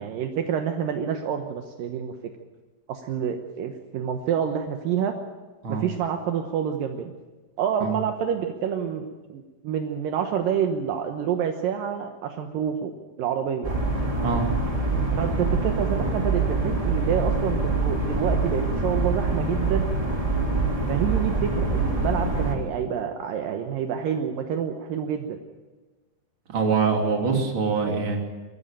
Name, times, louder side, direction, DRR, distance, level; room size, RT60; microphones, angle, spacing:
voice 1, 0.0-2.1 2.9-5.1 5.7-7.1 7.6-12.9 13.2-13.7 15.2-19.9 20.9-25.4, right 8 dB, 80° right, 5 dB, 2.0 m, -28 dB
sound 1, 13.6-22.5, right 3 dB, 10° right, 2.0 m, -25 dB
voice 2, 26.5-28.2, right 5 dB, 30° right, 1 dB, 2.6 m, -24 dB
22.5 x 14.5 x 9.0 m, 1.3 s
omnidirectional pair, 5.6 m